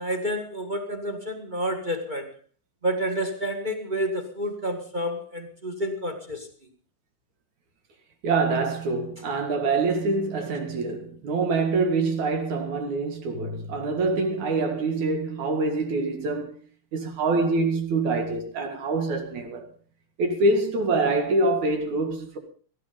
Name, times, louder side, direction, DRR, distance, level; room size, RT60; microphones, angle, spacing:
voice 1, 0.0-2.3 2.8-6.5, equal, 20° right, 1.3 m, -29 dB
voice 2, 8.2-16.6 16.9-19.7 20.2-22.4, right 3 dB, 65° right, 3.5 m, -25 dB
18.0 x 13.0 x 5.3 m
omnidirectional pair, 3.8 m